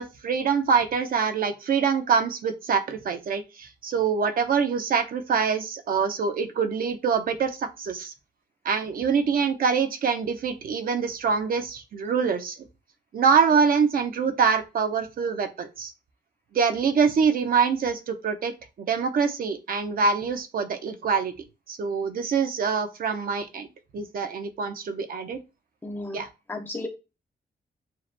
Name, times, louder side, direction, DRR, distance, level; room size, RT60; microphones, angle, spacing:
voice 1, 0.0-8.1 8.6-12.6 13.1-15.9 16.5-18.5 18.8-21.3 21.7-23.7 23.9-25.4 26.1-26.3, right 6 dB, 60° right, 8 dB, 0.8 m, -25 dB
voice 2, 25.8-26.2 26.5-26.9, left 2 dB, 10° left, 2 dB, 0.8 m, -33 dB
7.5 x 2.9 x 2.2 m, 0.27 s
wide cardioid pair, 180°, 17 cm